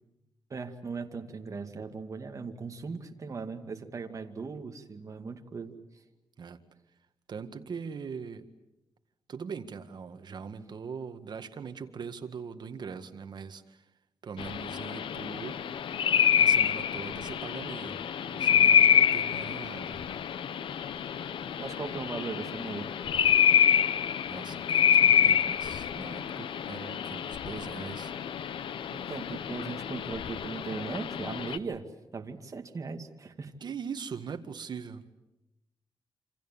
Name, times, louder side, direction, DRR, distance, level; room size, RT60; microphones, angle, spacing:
voice 1, 0.5-5.7 21.6-22.9 28.9-31.8 32.1-33.5, right 4 dB, 40° right, 5 dB, 2.3 m, -38 dB
voice 2, 7.3-8.5 9.3-13.8 14.2-15.6 16.4-18.0 18.3-20.0 24.3-28.1 33.6-35.1, right 6 dB, 60° right, 8 dB, 1.9 m, -41 dB
sound 1, 14.4-31.6, left 8 dB, 85° left, 1.0 m, -27 dB
28.0 x 26.5 x 7.4 m, 0.92 s
wide cardioid pair, 115°, 9 cm